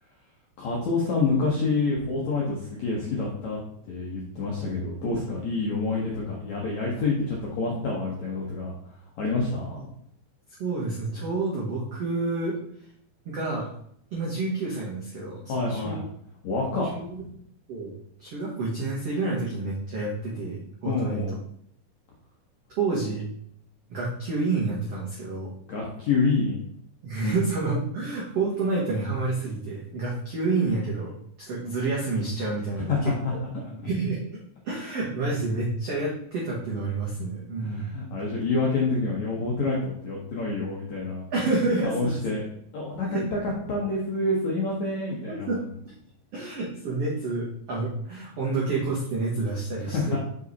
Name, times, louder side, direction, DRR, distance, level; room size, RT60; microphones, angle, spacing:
voice 1, 0.6-3.6 3.9-8.7 9.2-9.9 15.5-16.0 16.4-17.3 20.8-21.3 25.7-26.6 27.2-27.4 32.9-33.6 37.6-41.3 41.8-42.4 42.7-45.6 49.8-50.2, left 3 dB, 75° left, -4 dB, 1.7 m, -27 dB
voice 2, 10.6-12.6 13.2-13.7 14.1-15.4 15.7-15.9 16.9-17.2 17.7-17.9 18.2-21.2 22.8-23.2 23.9-25.5 27.0-31.1 31.5-33.1 33.7-34.2 34.6-37.9 41.3-42.4 43.1-43.2 45.3-45.6 46.3-50.2, right 3 dB, 75° right, -5 dB, 1.4 m, -29 dB
6.4 x 5.3 x 4.1 m, 0.68 s
omnidirectional pair, 5.0 m